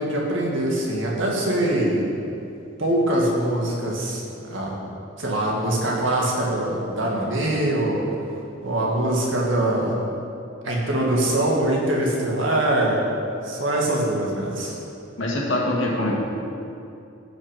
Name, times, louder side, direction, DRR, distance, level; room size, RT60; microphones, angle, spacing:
voice 1, 0.0-2.0 2.8-4.2 4.5-4.7 5.2-8.0 8.6-10.0 10.6-13.0 13.4-14.8, right 1 dB, 60° right, -3 dB, 2.1 m, -23 dB
voice 2, 15.2-16.2, left 1 dB, 65° left, -3 dB, 2.1 m, -23 dB
14.5 x 6.2 x 5.2 m, 2.7 s
head